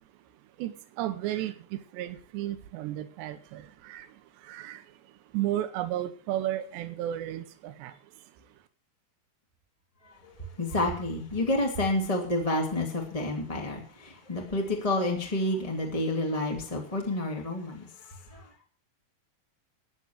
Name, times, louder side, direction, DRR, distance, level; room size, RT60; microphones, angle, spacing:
voice 1, 0.6-8.3, right 13 dB, 85° right, 9 dB, 3.3 m, -34 dB
voice 2, 10.2-18.5, left 1 dB, 10° left, 0 dB, 2.1 m, -29 dB
14.0 x 10.0 x 6.5 m, 0.41 s
omnidirectional pair, 4.9 m